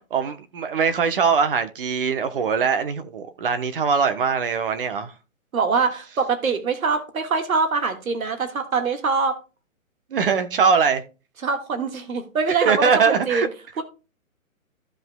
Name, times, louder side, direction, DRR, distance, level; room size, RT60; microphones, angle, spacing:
voice 1, 0.1-5.1 10.1-11.0 12.6-13.5, right 6 dB, 40° right, 1.0 m, -21 dB
voice 2, 5.5-9.4 11.4-13.5 13.8-13.9, right 4 dB, 80° right, 1.8 m, -23 dB
15.0 x 5.3 x 2.2 m
hypercardioid pair, 160°, 41 cm